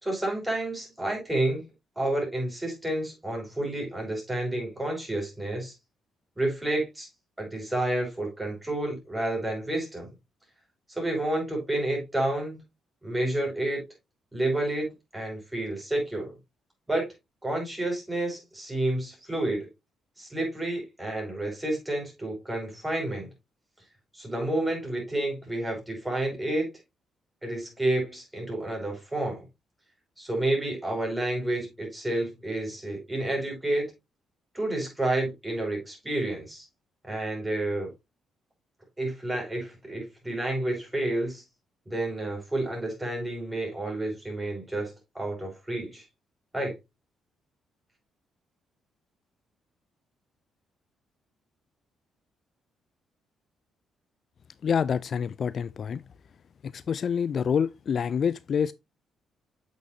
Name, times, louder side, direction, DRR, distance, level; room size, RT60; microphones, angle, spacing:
voice 1, 0.0-1.6 2.0-5.7 6.4-7.1 7.4-10.1 10.9-12.6 13.0-13.8 14.3-16.3 16.9-17.1 17.4-19.7 20.2-23.3 24.1-26.7 27.4-29.5 30.2-33.9 34.5-36.6 37.0-37.9 39.0-41.4 41.9-46.0 46.5-46.7, right 1 dB, 10° right, 5.3 m, -30 dB
voice 2, 54.6-56.0 56.6-58.7, left 7 dB, 50° left, 0.3 m, -27 dB
7.9 x 6.2 x 2.7 m
cardioid pair, 90°, 0 cm